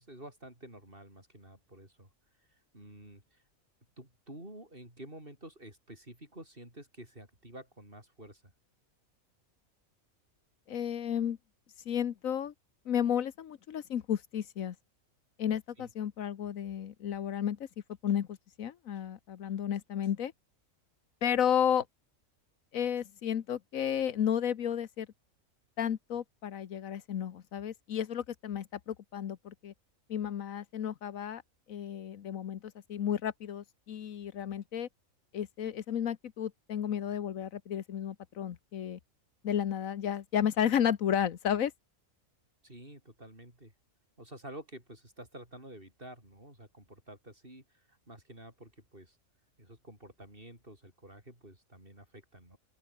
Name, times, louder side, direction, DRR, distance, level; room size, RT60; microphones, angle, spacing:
voice 1, 0.0-2.1 2.5-3.4 4.0-8.5 15.8-15.9 42.6-43.7 44.2-49.2 49.6-52.6, right 1 dB, 40° right, 7.5 m, -50 dB
voice 2, 10.7-11.4 11.9-12.5 12.9-14.7 15.4-17.6 18.0-20.3 21.2-21.8 22.7-25.1 25.8-29.7 30.1-31.4 31.7-34.9 35.3-39.0 39.4-41.7, left 9 dB, 75° left, 1.4 m, -32 dB
open air
omnidirectional pair, 1.4 m